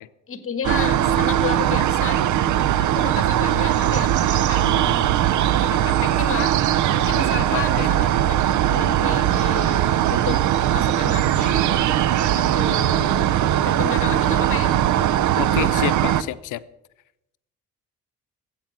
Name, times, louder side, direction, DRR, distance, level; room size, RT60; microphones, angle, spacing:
voice 1, 0.3-2.2 2.8-6.6 7.1-10.4 10.7-11.6 12.3-13.3 13.6-14.8, left 6 dB, 45° left, 1.6 m, -32 dB
sound 1, 0.6-16.2, right 11 dB, 75° right, 0.7 m, -20 dB
voice 2, 7.5-7.9 15.4-16.6, left 15 dB, 85° left, 0.7 m, -28 dB
13.5 x 8.9 x 7.4 m
cardioid pair, 90°, 30 cm